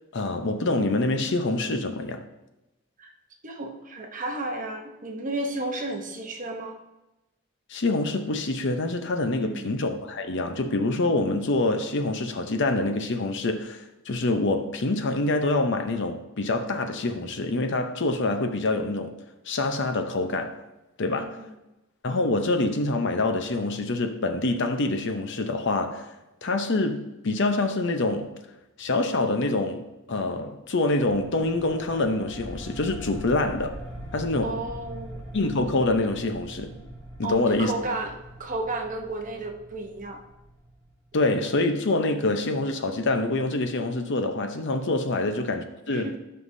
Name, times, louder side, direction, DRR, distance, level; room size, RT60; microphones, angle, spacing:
voice 1, 0.1-2.3 7.7-19.1 19.5-20.6 21.0-21.4 22.0-26.1 26.4-28.3 28.8-33.7 34.1-34.5 35.3-36.7 37.2-37.7 41.1-46.1, left 2 dB, 60° left, 0.8 m, -26 dB
voice 2, 3.4-6.8 9.4-9.7 21.1-21.5 34.4-35.2 37.2-38.1 38.4-40.2 45.1-45.3 45.9-46.2, right 2 dB, 40° right, 0.9 m, -33 dB
sound 1, 31.0-41.2, equal, 10° left, 2.9 m, -42 dB
13.0 x 5.7 x 2.7 m
head